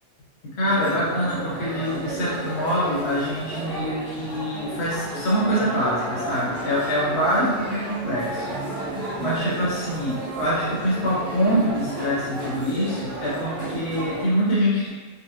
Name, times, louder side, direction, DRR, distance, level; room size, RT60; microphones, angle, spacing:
voice 1, 0.6-14.9, equal, 55° left, -7 dB, 1.2 m, -25 dB
sound 1, 0.6-14.2, right 1 dB, 40° right, 1.3 m, -32 dB
4.1 x 2.1 x 2.8 m, 1.3 s
omnidirectional pair, 1.4 m